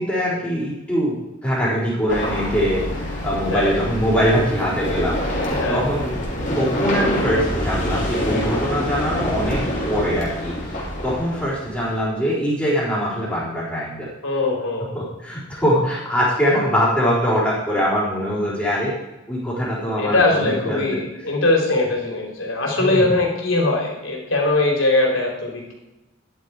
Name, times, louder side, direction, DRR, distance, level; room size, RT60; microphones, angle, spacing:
voice 1, 0.0-5.4 5.7-6.2 6.5-10.5 11.0-14.1 14.9-18.9 19.3-21.0 22.8-23.2, equal, 10° left, -13 dB, 4.4 m, -22 dB
sound 1, 2.1-12.0, equal, 40° left, 3.3 m, -26 dB
voice 2, 5.5-5.8 14.2-14.9 20.0-25.7, left 2 dB, 75° left, 0 dB, 3.6 m, -21 dB
13.0 x 11.0 x 4.9 m, 1.0 s
head